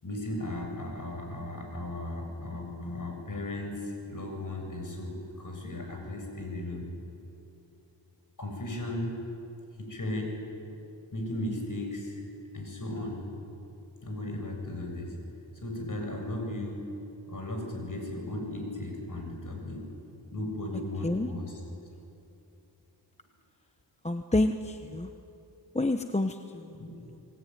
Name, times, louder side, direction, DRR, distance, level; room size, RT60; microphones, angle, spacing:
voice 1, 0.0-6.9 8.4-9.2 9.8-10.4 11.1-12.2 12.5-13.2 14.0-15.2 15.6-16.9 17.3-19.9 20.3-21.5 26.7-26.9, left 1 dB, 45° left, 2 dB, 7.4 m, -36 dB
voice 2, 24.0-25.1 25.7-26.8 27.1-27.2, left 2 dB, 15° left, 7 dB, 1.1 m, -29 dB
28.5 x 20.0 x 9.4 m, 2.7 s
wide cardioid pair, 75°, 44 cm